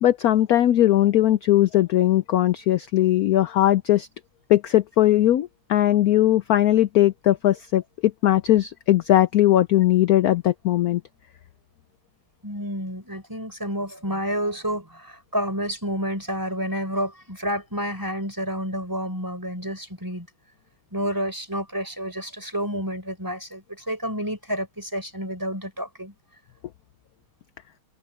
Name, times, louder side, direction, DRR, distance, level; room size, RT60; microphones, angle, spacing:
voice 1, 0.0-4.1 4.5-11.0, left 13 dB, 90° left, 0.8 m, -19 dB
voice 2, 12.4-20.3 20.9-26.1, equal, 10° right, 5.2 m, -29 dB
omnidirectional pair, 2.2 m